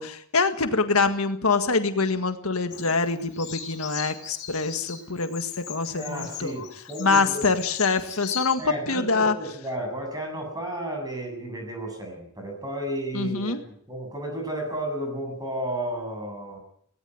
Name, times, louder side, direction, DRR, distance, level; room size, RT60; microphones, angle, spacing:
voice 1, 0.0-6.5 7.0-8.6 8.9-9.3 13.1-13.6, left 4 dB, 75° left, 8 dB, 1.8 m, -25 dB
Bird vocalization bird call bird song, 2.7-8.5, left 8 dB, 55° left, 6.0 m, -38 dB
voice 2, 5.9-7.5 8.6-16.6, right 1 dB, 20° right, 3 dB, 7.5 m, -33 dB
18.0 x 18.0 x 9.3 m, 0.65 s
head